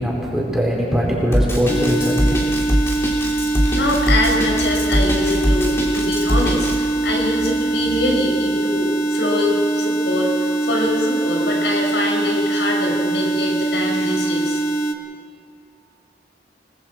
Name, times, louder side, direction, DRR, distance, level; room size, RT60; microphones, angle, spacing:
voice 1, 0.0-2.5, equal, ahead, -4 dB, 4.5 m, -21 dB
Drum kit, 1.3-6.7, equal, 15° left, 3.1 m, -21 dB
sound 1, 1.7-14.9, right 2 dB, 40° left, 1.5 m, -22 dB
voice 2, 3.0-14.6, left 1 dB, 85° left, 0 dB, 5.5 m, -24 dB
29.0 x 19.5 x 4.7 m, 2.5 s
head